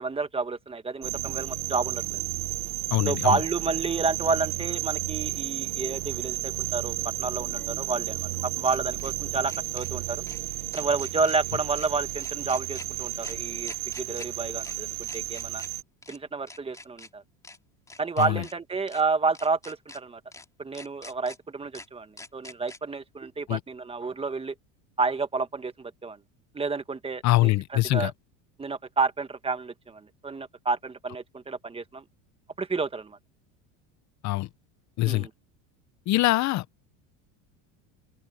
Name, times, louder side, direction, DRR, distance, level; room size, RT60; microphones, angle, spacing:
voice 1, 0.0-2.2 3.0-10.2 10.7-15.6 16.1-17.2 18.0-20.2 20.6-24.5 25.0-26.2 26.5-28.1 28.6-32.0 32.6-33.2 35.0-35.3, right 4 dB, 15° right, 1.4 m, -30 dB
sound 1, 1.0-15.8, right 21 dB, 60° right, 1.5 m, -32 dB
voice 2, 2.9-3.4 18.2-18.4 23.5-23.6 27.2-28.1 34.2-34.5 35.0-35.3 36.1-36.8, left 18 dB, 45° left, 0.8 m, -24 dB
sound 2, 4.8-4.9 7.3-9.1 9.5-9.9 10.3-10.4 10.7-11.4 11.7-11.9 12.2-12.9 13.2-13.3 13.6-14.3 14.6-14.8 15.0-15.7 16.0-16.2 16.5-17.1 17.4-17.6 17.9-18.5 18.9-19.0 19.3-20.0 20.3-20.4 20.7-21.4 21.7-21.9 22.2-22.8, left 2 dB, 10° left, 2.9 m, -46 dB
open air
supercardioid pair, 125°, 39 cm